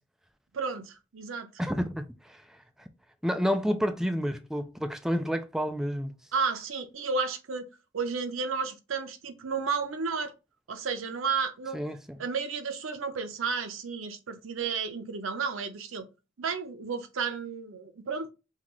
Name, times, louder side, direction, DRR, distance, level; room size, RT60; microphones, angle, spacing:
voice 1, 0.5-1.6 6.3-7.7 7.9-10.3 10.7-11.8 12.2-16.1 16.4-18.3, right 5 dB, 85° right, 0.7 m, -32 dB
voice 2, 1.6-2.9 3.2-6.2 11.7-12.2, equal, ahead, 0.3 m, -30 dB
5.6 x 2.4 x 3.0 m
head